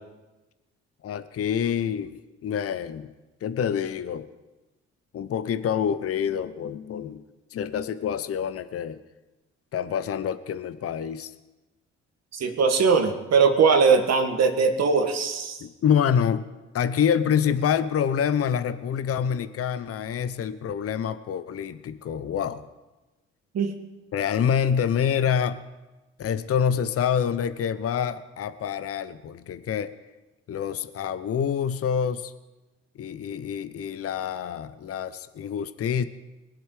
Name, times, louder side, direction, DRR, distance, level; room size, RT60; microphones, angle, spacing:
voice 1, 1.0-3.1 3.4-4.3 5.1-7.2 7.5-9.0 9.7-11.3 15.6-16.5 16.7-22.7 24.1-25.6 26.2-29.9 30.5-32.3 33.0-36.0, left 8 dB, 45° left, 13 dB, 0.8 m, -26 dB
voice 2, 12.3-15.6 23.5-23.7, right 5 dB, 55° right, 6 dB, 1.8 m, -20 dB
21.5 x 7.9 x 4.9 m, 1.1 s
hypercardioid pair, 50°, 31 cm